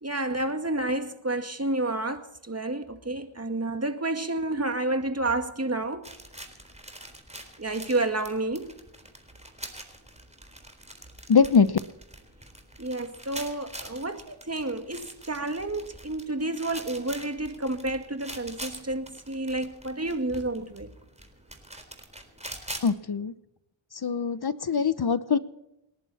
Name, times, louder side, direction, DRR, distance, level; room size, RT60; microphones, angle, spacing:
voice 1, 0.0-6.1 7.6-8.8 12.8-20.9, right 2 dB, 30° right, 2.1 m, -30 dB
sound 1, 6.0-22.9, right 1 dB, 15° right, 4.0 m, -44 dB
voice 2, 11.3-11.8 22.8-23.3 24.0-25.4, left 6 dB, 50° left, 1.0 m, -22 dB
28.5 x 11.0 x 4.3 m
cardioid pair, 45°, 50 cm